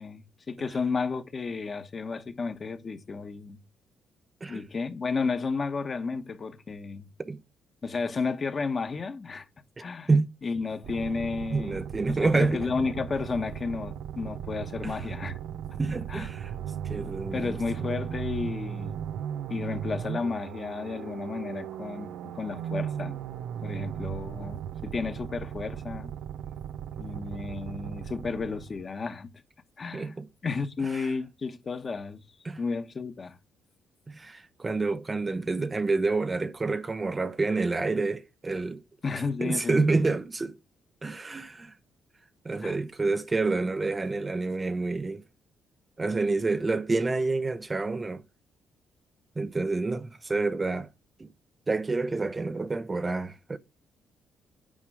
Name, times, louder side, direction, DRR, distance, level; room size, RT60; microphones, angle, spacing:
voice 1, 0.0-3.6 4.5-7.1 7.8-9.5 9.8-10.1 10.4-15.4 16.1-16.3 17.0-19.0 19.5-23.2 23.6-26.1 27.0-29.3 29.8-30.1 30.4-32.2 32.6-33.4 39.0-40.1 42.6-42.8, left 4 dB, 40° left, 1.1 m, -32 dB
voice 2, 9.8-10.3 11.5-12.6 14.8-14.9 15.8-16.6 16.8-17.5 29.9-30.3 30.9-31.1 32.4-32.6 34.1-38.8 39.4-40.6 41.0-41.7 42.4-45.2 46.0-48.2 49.4-50.9 51.2-51.3 51.7-53.6, right 3 dB, 25° right, 0.6 m, -28 dB
sound 1, 10.8-28.9, right 9 dB, 80° right, 0.4 m, -37 dB
8.8 x 4.8 x 4.8 m
cardioid pair, 90°, 0 cm